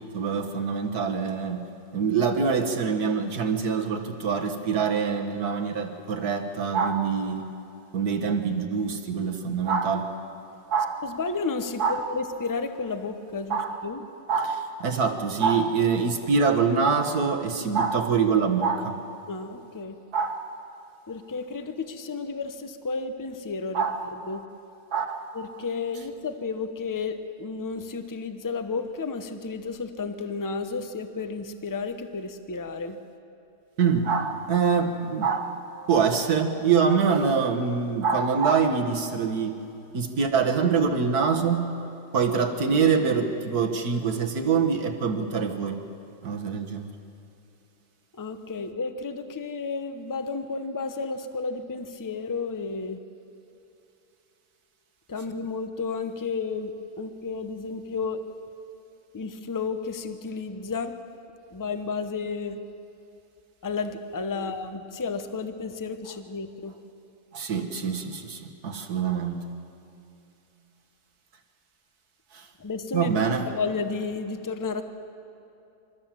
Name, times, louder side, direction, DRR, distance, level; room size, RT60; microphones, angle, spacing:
voice 1, 0.1-1.6 1.9-7.5 7.9-10.1 10.7-11.0 11.8-12.0 13.5-13.8 14.3-19.0 20.1-20.4 23.7-24.0 24.9-25.2 33.8-35.5 35.9-39.6 39.9-41.8 42.1-45.8 46.2-46.9 64.4-64.5 67.3-69.5 72.3-72.5 72.9-73.5, right 5 dB, 65° right, 5 dB, 1.9 m, -25 dB
voice 2, 11.0-14.0 19.3-20.0 21.1-23.8 24.1-24.4 25.3-33.0 48.1-53.0 55.1-56.7 57.0-58.2 59.1-60.9 61.5-62.6 63.6-66.7 72.6-73.1 73.4-74.8, left 4 dB, 20° left, 9 dB, 0.6 m, -32 dB
27.5 x 13.0 x 7.4 m, 2.8 s
omnidirectional pair, 1.8 m